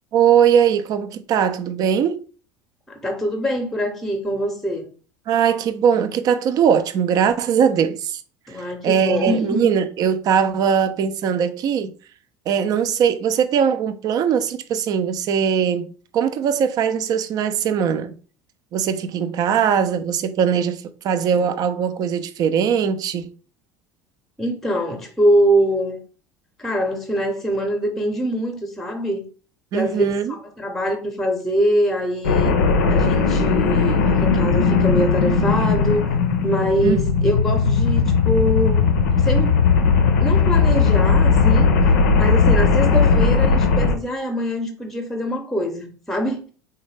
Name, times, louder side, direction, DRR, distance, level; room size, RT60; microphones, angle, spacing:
voice 1, 0.1-2.2 5.3-8.2 8.8-11.9 12.5-18.1 18.7-23.3 29.7-30.3 36.8-37.0, right 7 dB, 40° right, 0.4 m, -20 dB
voice 2, 2.9-4.9 8.5-9.7 24.4-26.0 26.6-29.2 29.7-30.0 30.3-32.5 32.9-36.0 36.4-38.9 39.2-39.6 40.2-41.7 42.2-46.5, equal, 5° left, 0.8 m, -23 dB
sound 1, 32.2-43.9, left 5 dB, 70° left, 0.5 m, -17 dB
3.8 x 2.2 x 3.2 m
figure-of-eight pair, 65°, 10 cm